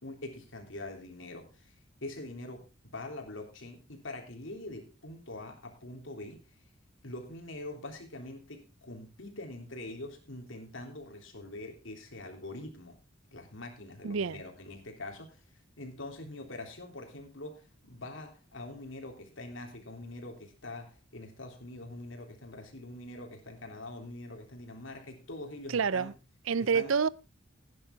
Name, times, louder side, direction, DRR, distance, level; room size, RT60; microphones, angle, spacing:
voice 1, 0.0-1.7 2.0-6.4 7.0-13.0 13.3-15.4 15.8-26.1 26.6-27.0, left 2 dB, 75° left, 3.3 m, -44 dB
voice 2, 14.0-14.4 25.7-26.1 26.5-27.1, right 6 dB, 85° right, 0.5 m, -28 dB
16.0 x 10.0 x 3.6 m
head